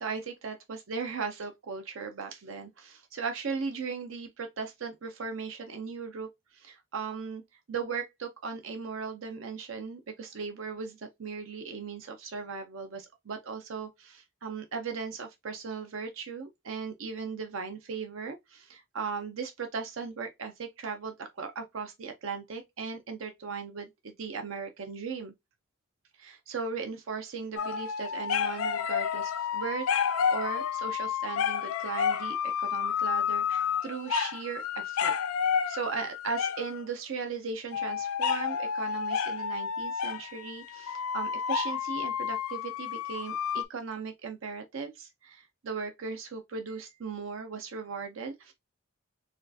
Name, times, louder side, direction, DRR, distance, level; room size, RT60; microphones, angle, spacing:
voice 1, 0.0-7.4 7.7-25.3 26.2-35.1 35.7-48.5, right 5 dB, 70° right, 0.5 m, -37 dB
sound 1, 27.6-36.8 37.7-43.6, left 7 dB, 90° left, 0.5 m, -30 dB
4.2 x 2.4 x 2.6 m
head